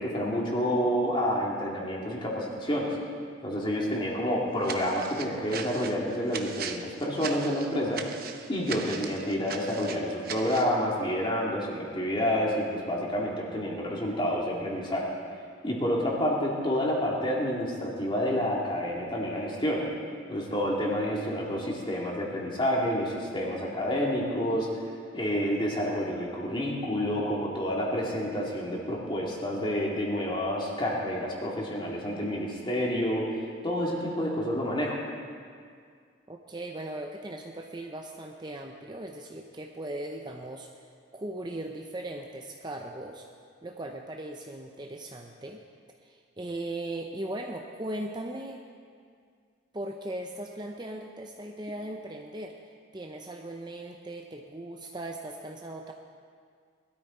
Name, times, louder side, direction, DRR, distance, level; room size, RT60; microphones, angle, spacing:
voice 1, 0.0-3.0 3.4-8.0 8.5-15.1 15.6-19.9 20.3-24.7 25.1-33.3 33.6-35.0, equal, 25° left, -3 dB, 2.3 m, -29 dB
sound 1, 4.6-10.8, right 6 dB, 45° right, 0.8 m, -39 dB
voice 2, 36.3-40.7 41.1-43.3 43.6-45.6 46.0-48.6 49.7-52.6 52.9-55.9, right 1 dB, 20° right, 2 dB, 0.6 m, -38 dB
20.0 x 13.0 x 4.3 m, 2.1 s
head